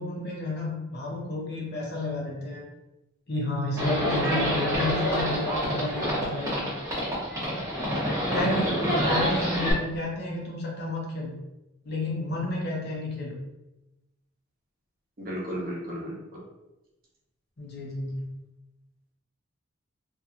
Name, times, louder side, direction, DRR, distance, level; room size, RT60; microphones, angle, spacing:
voice 1, 0.0-2.6 3.3-6.7 8.3-11.3 11.8-13.4 17.6-18.3, left 1 dB, 50° left, -3 dB, 0.8 m, -31 dB
Livestock farm animals working animals, 3.8-9.7, equal, 15° right, 0.9 m, -27 dB
voice 2, 8.2-9.1 15.2-16.2, right 1 dB, 45° right, -4 dB, 0.9 m, -33 dB
2.8 x 2.6 x 2.4 m, 0.96 s
head